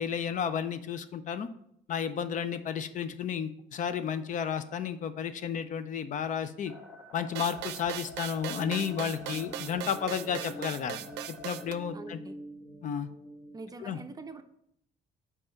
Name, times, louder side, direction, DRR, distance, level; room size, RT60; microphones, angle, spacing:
voice 1, 0.0-1.5 1.9-6.7 7.1-11.0 11.4-12.2 12.8-13.1 13.8-14.0, left 7 dB, 50° left, 12 dB, 0.5 m, -32 dB
sound 1, 6.6-11.7, left 3 dB, ahead, 1.2 m, -49 dB
sound 2, 7.4-11.7, right 12 dB, 85° right, 0.5 m, -39 dB
sound 3, 8.4-13.6, equal, 35° left, 1.2 m, -46 dB
voice 2, 11.9-12.4 13.5-14.4, right 3 dB, 20° right, 8 dB, 0.5 m, -44 dB
5.4 x 4.8 x 5.7 m, 0.75 s
cardioid pair, 110°, 17 cm